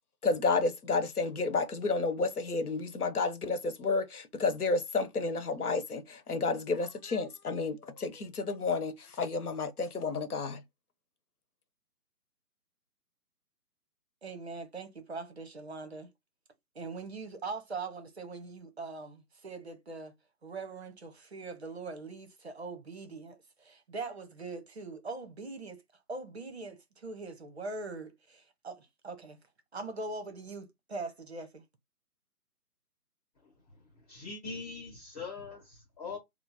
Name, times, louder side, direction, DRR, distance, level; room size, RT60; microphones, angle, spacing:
voice 1, 0.2-10.6, left 3 dB, 70° left, 1.0 m, -31 dB
voice 2, 14.2-16.1 16.7-20.1 20.4-25.8 26.1-29.4 29.7-31.6, right 3 dB, 45° right, 0.7 m, -42 dB
voice 3, 34.1-36.2, left 4 dB, 25° left, 1.3 m, -42 dB
4.2 x 2.0 x 2.8 m
figure-of-eight pair, 160°, 47 cm